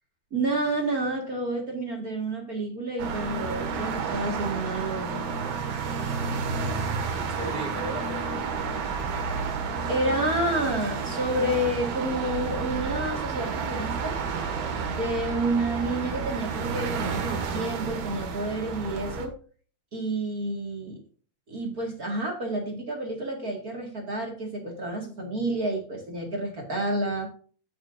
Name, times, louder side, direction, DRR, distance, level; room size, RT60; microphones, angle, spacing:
voice 1, 0.3-5.2 9.9-14.2 14.9-19.3 19.9-21.0 21.5-27.3, right 1 dB, 35° right, 0 dB, 1.5 m, -29 dB
sound 1, 3.0-19.3, right 5 dB, 70° right, 3.3 m, -31 dB
voice 2, 6.4-8.4, right 1 dB, 85° left, 0 dB, 0.5 m, -38 dB
16.0 x 6.1 x 2.6 m, 0.41 s
omnidirectional pair, 4.4 m